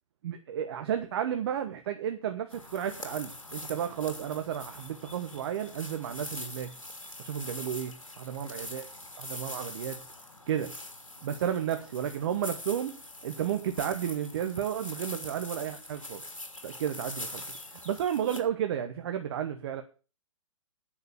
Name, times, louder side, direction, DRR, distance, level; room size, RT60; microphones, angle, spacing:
voice 1, 0.2-6.7 7.2-8.9 9.2-10.0 10.5-10.8 11.2-16.2 16.6-19.8, right 9 dB, 50° right, 1.3 m, -32 dB
sound 1, 2.5-18.4, left 2 dB, 85° left, 2.8 m, -43 dB
10.0 x 6.6 x 8.2 m
figure-of-eight pair, 120°, 17 cm